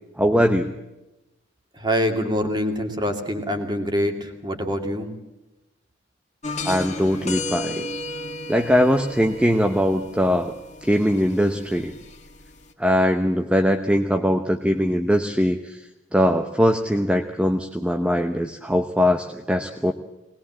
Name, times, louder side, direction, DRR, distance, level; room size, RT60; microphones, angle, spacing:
voice 1, 0.2-0.7 6.6-7.9 8.5-10.5 10.8-11.9 12.8-15.8 16.1-19.9, equal, 5° right, 5 dB, 1.0 m, -21 dB
voice 2, 1.7-5.1, equal, 25° right, 5 dB, 2.5 m, -25 dB
sound 1, 6.4-12.7, left 2 dB, 35° left, 2.0 m, -34 dB
20.5 x 20.0 x 7.5 m, 0.98 s
head